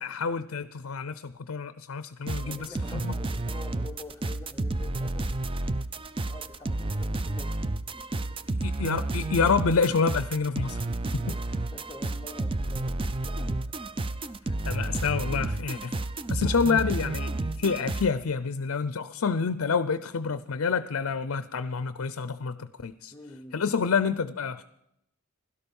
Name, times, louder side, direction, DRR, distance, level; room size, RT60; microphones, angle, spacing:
voice 1, 0.0-3.1 8.6-10.8 14.6-16.0 16.3-23.1 23.5-24.6, left 5 dB, 65° left, 13 dB, 0.5 m, -28 dB
sound 1, 2.3-18.1, right 2 dB, 25° right, 0.5 m, -31 dB
voice 2, 2.4-5.3 6.2-8.6 9.9-10.0 10.7-13.8 23.1-23.6, left 2 dB, 15° left, 2 dB, 0.7 m, -47 dB
16.5 x 12.5 x 5.4 m, 0.80 s
head